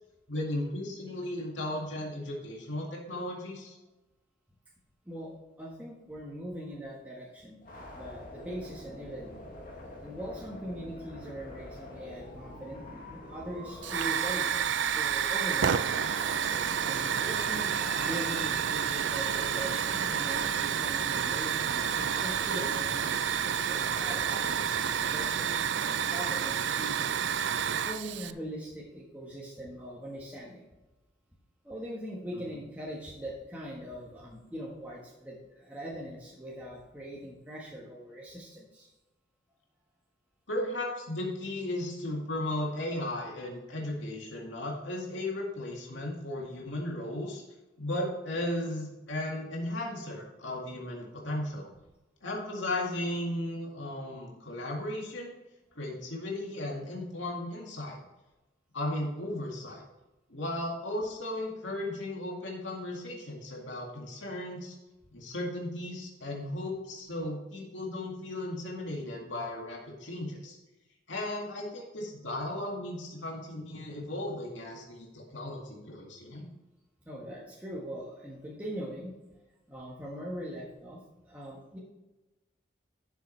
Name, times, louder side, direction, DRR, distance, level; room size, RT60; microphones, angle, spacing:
voice 1, 0.3-3.8 32.3-32.4 40.5-47.4 47.8-51.7 52.2-55.3 55.8-58.0 58.7-59.8 60.3-64.8 65.1-70.6 71.1-76.5, left 1 dB, 90° left, -1 dB, 2.1 m, -35 dB
voice 2, 5.6-7.6 7.9-9.5 10.0-15.8 16.8-27.3 27.8-30.6 31.6-38.9 77.0-79.1 79.7-81.8, equal, 10° right, -5 dB, 1.4 m, -41 dB
sound 1, 7.6-25.6, left 1 dB, 45° left, 2.2 m, -45 dB
Hiss / Fire, 13.8-28.3, right 8 dB, 80° right, 0.5 m, -29 dB
11.5 x 7.1 x 3.3 m, 1.1 s
head